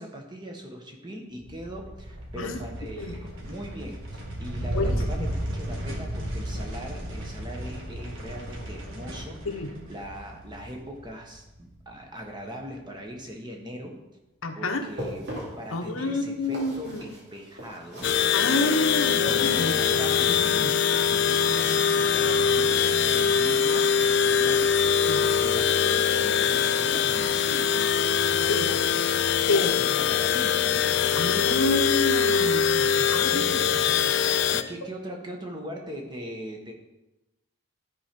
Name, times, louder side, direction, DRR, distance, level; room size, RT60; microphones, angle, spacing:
voice 1, 0.0-13.9 14.5-15.2 15.6-18.1 19.5-24.7 25.0-29.1 29.4-31.8 32.7-36.7, equal, 20° right, 1 dB, 1.2 m, -40 dB
sound 1, 1.3-11.9, right 1 dB, 70° right, 1.7 m, -34 dB
voice 2, 14.4-14.8 15.7-17.0 18.3-19.7 20.3-20.7 25.1-25.2 28.5-28.7 29.5-29.7 31.1-32.7 33.1-33.6, left 2 dB, 85° left, 5 dB, 1.0 m, -28 dB
sound 2, 14.8-21.5 22.9-24.7 25.0-27.0 27.4-27.6 28.1-28.2, equal, 55° right, 2.6 m, -43 dB
sound 3, 18.0-34.6, left 7 dB, 55° left, 0.4 m, -23 dB
12.5 x 4.4 x 5.3 m, 0.99 s
head